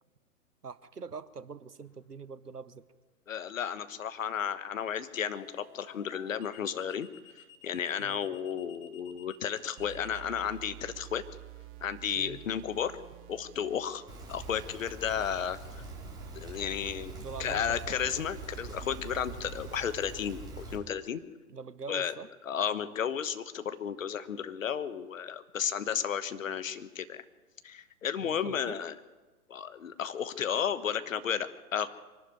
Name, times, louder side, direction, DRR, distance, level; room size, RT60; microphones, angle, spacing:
voice 1, 0.6-2.9 8.0-8.3 12.1-12.4 17.1-18.2 21.5-22.3 28.2-28.8, right 5 dB, 85° right, 16 dB, 1.1 m, -44 dB
sound 1, 1.8-2.2 5.1-10.2, left 9 dB, 30° left, 1.5 m, -55 dB
voice 2, 3.3-7.1 7.6-11.2 11.8-13.0 13.3-14.0 14.3-15.8 16.3-17.1 17.4-21.2 21.9-22.1 22.5-27.2 27.6-28.9 29.5-31.9, left 8 dB, 60° left, 12 dB, 1.4 m, -33 dB
sound 2, 9.8-19.8, right 17 dB, 25° right, 1.0 m, -50 dB
Rain, 14.1-20.8, right 2 dB, 10° right, 3.3 m, -44 dB
23.0 x 12.0 x 9.4 m, 1.2 s
figure-of-eight pair, 120°, 46 cm